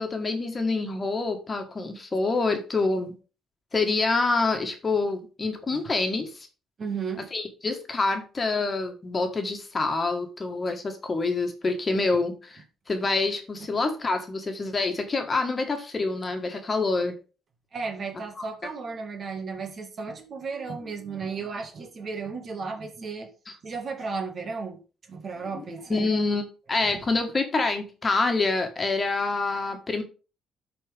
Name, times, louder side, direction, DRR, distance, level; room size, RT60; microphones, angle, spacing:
voice 1, 0.0-3.1 3.7-6.5 7.3-17.2 25.9-26.4 26.7-30.0, left 3 dB, 30° left, 1.6 m, -26 dB
voice 2, 6.8-7.3 17.7-23.3 23.6-24.8 25.1-26.1 26.9-27.0, right 4 dB, 50° right, 1.8 m, -34 dB
12.5 x 4.3 x 3.6 m
cardioid pair, 90°, 0 cm